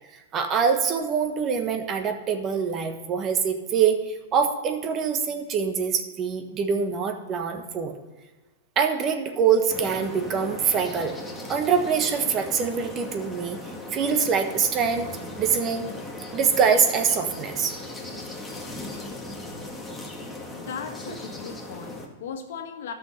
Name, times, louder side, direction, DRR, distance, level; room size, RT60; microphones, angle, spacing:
voice 1, 0.3-7.9 8.8-11.2 11.5-15.8 16.3-17.7, right 6 dB, 35° right, 6 dB, 1.3 m, -24 dB
sound 1, 9.7-22.1, left 2 dB, 5° left, 1.9 m, -38 dB
voice 2, 20.5-22.9, left 6 dB, 70° left, 5 dB, 1.5 m, -37 dB
12.5 x 6.3 x 5.7 m, 1.3 s
hypercardioid pair, 110°, 0 cm